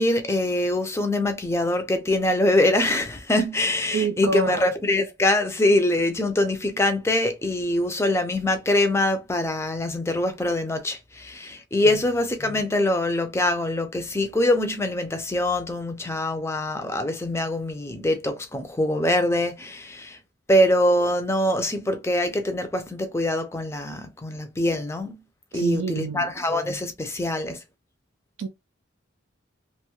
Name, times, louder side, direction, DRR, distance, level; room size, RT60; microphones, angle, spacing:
voice 1, 0.0-20.2 20.5-25.2 25.5-27.6, left 1 dB, 15° left, 0.4 m, -24 dB
voice 2, 3.9-4.6 11.8-12.0 25.5-26.3 28.4-28.5, right 5 dB, 80° right, 0.3 m, -27 dB
2.6 x 2.3 x 2.9 m
head